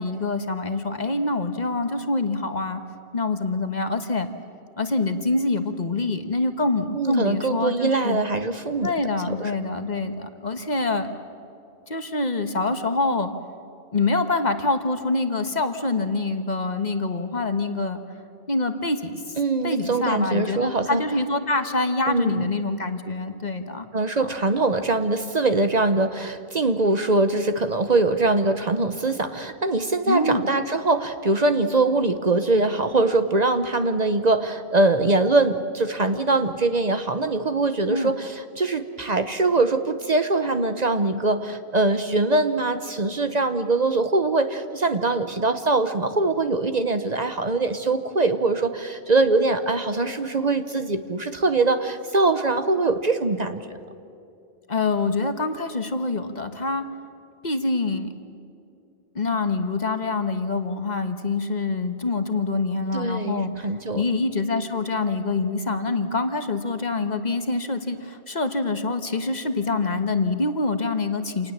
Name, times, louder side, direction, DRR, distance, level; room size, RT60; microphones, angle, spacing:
voice 1, 0.0-2.8 3.1-4.3 4.8-8.2 8.8-11.1 11.9-13.3 13.9-18.0 18.5-19.4 19.6-23.9 24.2-24.3 30.1-30.5 37.9-38.1 54.7-56.9 57.4-58.1 59.1-63.7 63.9-71.5, left 3 dB, 45° left, 8 dB, 1.3 m, -25 dB
voice 2, 6.9-8.9 9.3-9.5 19.4-21.0 22.1-22.5 23.9-53.7 62.9-64.0, right 2 dB, 45° right, 9 dB, 0.9 m, -22 dB
27.5 x 19.0 x 7.4 m, 2.7 s
omnidirectional pair, 1.1 m